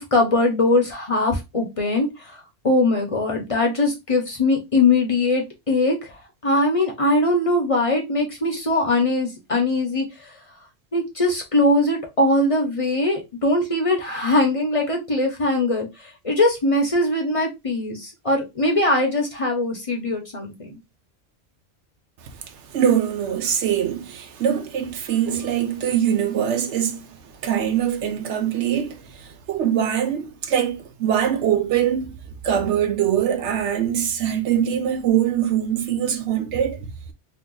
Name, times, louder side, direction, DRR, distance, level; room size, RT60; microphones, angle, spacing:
voice 1, 0.0-2.4 2.6-6.1 6.4-10.3 10.9-20.8, left 2 dB, 35° left, 0.7 m, -21 dB
voice 2, 22.7-27.1 27.4-32.1 32.4-36.9, right 9 dB, 85° right, 1.0 m, -23 dB
2.9 x 2.1 x 3.7 m
omnidirectional pair, 1.1 m